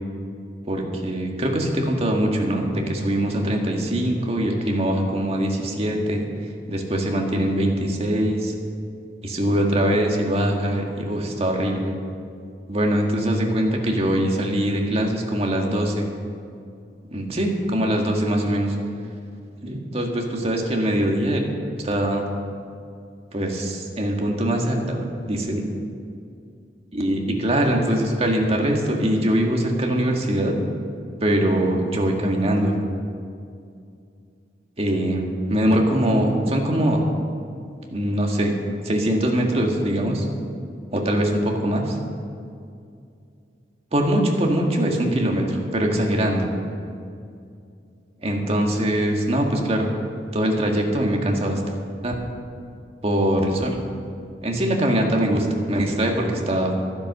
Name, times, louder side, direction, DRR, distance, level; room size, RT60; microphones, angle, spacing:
voice 1, 0.7-6.3 6.7-8.5 9.2-12.0 12.7-16.1 17.1-18.8 19.6-21.5 21.8-22.3 23.3-25.6 26.9-30.6 31.2-32.8 34.8-37.0 37.9-38.6 38.8-40.3 40.9-41.9 43.9-46.5 48.2-49.9 50.3-51.6 52.0-52.1 53.0-53.8 54.4-56.7, right 1 dB, 35° right, 1 dB, 1.8 m, -22 dB
12.5 x 10.0 x 6.6 m, 2.4 s
head